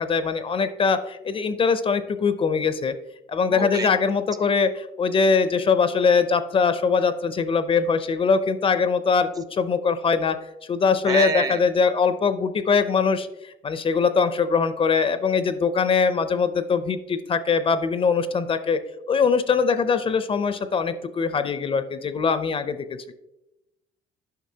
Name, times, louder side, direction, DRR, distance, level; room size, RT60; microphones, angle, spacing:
voice 1, 0.0-2.9 3.3-10.4 10.7-18.8 19.1-23.1, left 5 dB, 30° left, 11 dB, 0.5 m, -22 dB
voice 2, 3.5-3.9 11.1-11.6, right 4 dB, 20° right, 10 dB, 0.5 m, -26 dB
9.4 x 5.8 x 2.8 m, 0.93 s
cardioid pair, 110°, 17 cm